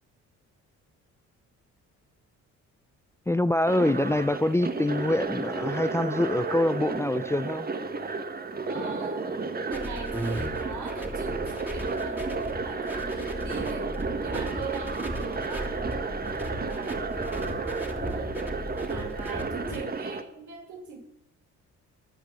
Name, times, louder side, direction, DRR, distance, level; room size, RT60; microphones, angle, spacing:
voice 1, 3.3-7.7, left 1 dB, 10° left, 0.5 m, -25 dB
sound 1, 3.6-20.2, right 4 dB, 30° right, 1.4 m, -32 dB
voice 2, 8.7-13.9 14.2-18.3 18.9-21.0, right 5 dB, 75° right, 5.9 m, -41 dB
sound 2, 9.7-19.8, equal, 5° right, 2.8 m, -36 dB
21.5 x 7.9 x 7.5 m
cardioid pair, 90°, 30 cm